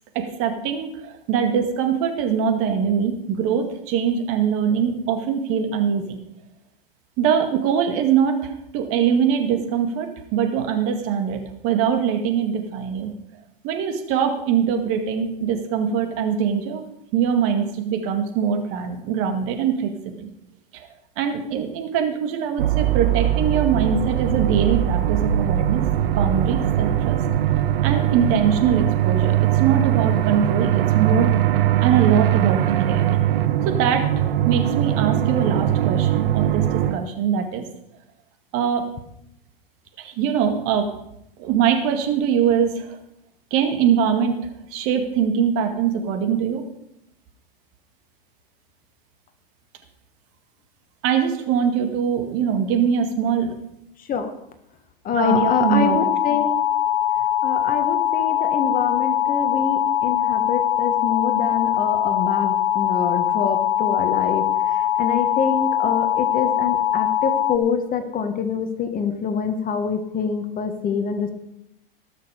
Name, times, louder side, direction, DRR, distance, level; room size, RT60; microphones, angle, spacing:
voice 1, 0.1-6.2 7.2-13.1 13.6-16.8 17.1-20.3 20.7-20.9 21.2-25.8 26.2-27.2 27.5-31.4 31.8-33.1 33.7-37.6 38.5-38.9 40.0-40.9 41.4-43.0 43.5-44.4 44.7-46.6 51.0-53.5 55.1-56.0, right 7 dB, 50° right, 6 dB, 2.0 m, -22 dB
sound 1, 22.6-36.9, right 12 dB, 70° right, 1.2 m, -21 dB
voice 2, 55.0-56.5 57.4-71.3, left 6 dB, 30° left, 8 dB, 1.4 m, -25 dB
sound 2, 55.3-67.6, left 11 dB, 70° left, 1.0 m, -22 dB
19.0 x 6.5 x 5.0 m, 0.80 s
hypercardioid pair, 110°, 29 cm